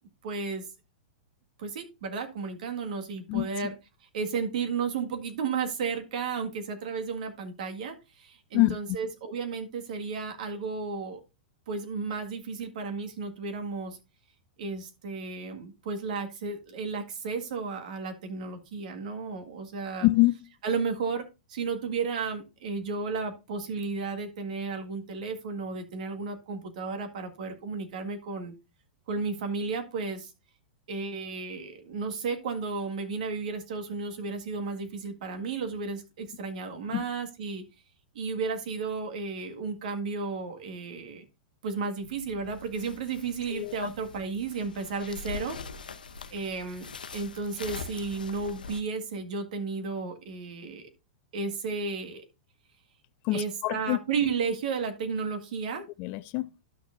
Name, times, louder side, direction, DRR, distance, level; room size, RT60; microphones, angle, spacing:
voice 1, 0.2-0.7 1.6-3.7 4.1-11.2 11.7-14.0 14.6-20.1 20.6-28.5 29.1-30.3 30.9-37.6 38.2-41.2 41.6-45.6 46.3-50.9 51.3-52.2 53.3-55.9, right 4 dB, 65° right, 1.8 m, -33 dB
voice 2, 20.0-20.4 36.9-37.1 43.5-43.7 53.2-54.0 56.0-56.6, left 21 dB, 40° left, 0.4 m, -25 dB
sound 1, 42.0-48.8, left 4 dB, 85° left, 0.8 m, -43 dB
12.0 x 6.2 x 2.6 m
hypercardioid pair, 110°, 5 cm